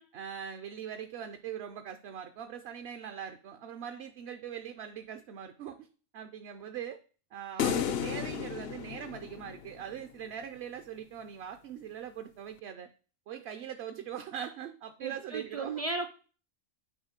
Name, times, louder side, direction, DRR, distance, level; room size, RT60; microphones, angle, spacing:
voice 1, 0.1-5.9 6.1-7.0 7.3-12.9 13.3-15.8, right 9 dB, 65° right, 7 dB, 0.8 m, -41 dB
sound 1, 7.6-10.0, left 9 dB, 65° left, 0.7 m, -33 dB
voice 2, 15.0-16.1, right 3 dB, 45° right, 6 dB, 0.5 m, -35 dB
7.2 x 3.0 x 5.0 m, 0.37 s
omnidirectional pair, 1.3 m